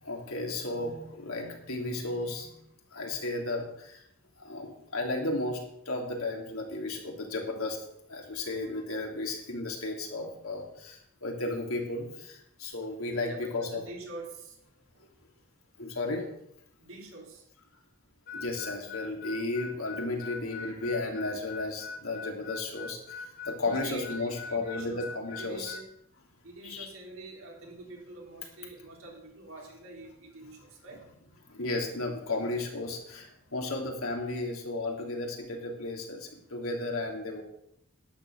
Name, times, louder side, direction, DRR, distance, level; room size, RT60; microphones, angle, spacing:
voice 1, 0.0-2.6 2.9-4.0 4.4-7.8 8.1-13.8 15.8-16.3 18.3-25.8 26.6-26.9 31.5-37.4, left 2 dB, 80° left, 0 dB, 3.2 m, -34 dB
voice 2, 13.3-14.6 16.8-17.4 23.6-25.0 25.4-25.8 26.4-31.0 33.6-33.7, right 2 dB, 75° right, -1 dB, 3.9 m, -46 dB
Harmonica, 18.3-25.9, left 4 dB, 40° left, 2.0 m, -42 dB
11.5 x 9.5 x 6.5 m, 0.77 s
head